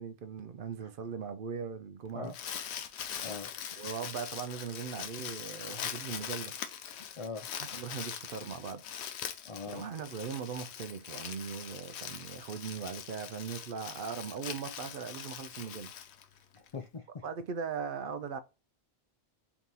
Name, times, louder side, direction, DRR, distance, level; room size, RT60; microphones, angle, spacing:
voice 1, 0.0-2.3 3.8-6.5 7.6-8.8 9.7-15.9 17.2-18.4, right 6 dB, 60° right, 0.7 m, -39 dB
Crumpling crinkling, 2.1-16.7, left 9 dB, 85° left, 0.9 m, -42 dB
voice 2, 3.2-3.5 7.2-7.5 9.4-9.9 16.5-17.2, left 4 dB, 50° left, 0.4 m, -41 dB
3.5 x 2.9 x 3.9 m
omnidirectional pair, 1.1 m